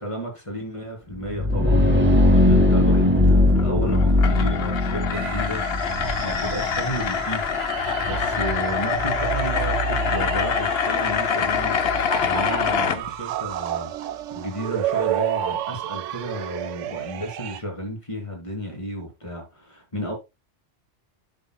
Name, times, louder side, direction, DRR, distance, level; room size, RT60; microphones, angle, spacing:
voice 1, 0.0-5.6 5.9-7.6 8.1-13.9 14.3-20.1, equal, 25° left, 2.9 m, -32 dB
sound 1, 1.2-12.8, left 1 dB, 10° right, 1.7 m, -22 dB
sound 2, 3.5-13.0, left 7 dB, 60° left, 1.0 m, -25 dB
sound 3, 5.1-17.6, right 12 dB, 85° right, 0.9 m, -32 dB
10.5 x 6.6 x 2.3 m
omnidirectional pair, 1.2 m